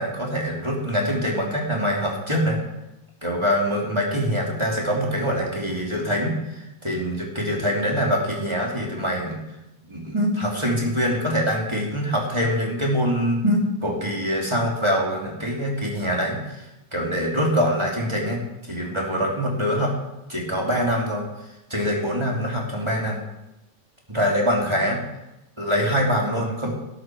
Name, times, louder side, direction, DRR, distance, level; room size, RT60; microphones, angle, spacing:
voice 1, 0.0-2.6 3.2-9.4 9.8-16.4 16.9-18.4 18.7-19.9 20.3-21.2 21.7-23.2 24.1-25.0 25.6-26.7, equal, 10° right, -2 dB, 2.6 m, -24 dB
12.5 x 11.5 x 6.1 m, 0.94 s
omnidirectional pair, 3.3 m